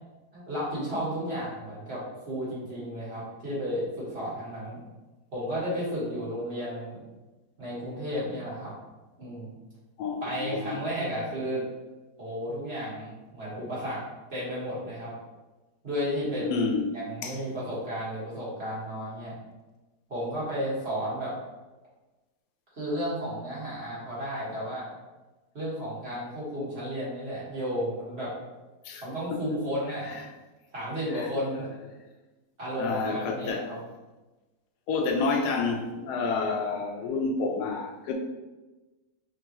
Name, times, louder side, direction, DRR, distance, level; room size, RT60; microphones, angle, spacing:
voice 1, 0.3-4.8 5.3-7.0 7.6-8.7 9.2-9.5 10.2-11.6 12.2-14.0 14.3-15.1 15.8-19.3 20.1-21.3 22.7-24.9 25.5-28.3 29.0-30.1 30.7-31.7 32.6-33.8, equal, 40° right, -8 dB, 1.7 m, -33 dB
voice 2, 10.0-10.9 16.4-17.4 28.8-29.0 29.3-29.4 30.1-30.2 31.1-31.3 32.8-33.7 34.9-38.1, left 4 dB, 85° left, 3 dB, 1.1 m, -29 dB
5.2 x 2.4 x 2.8 m, 1.2 s
omnidirectional pair, 1.7 m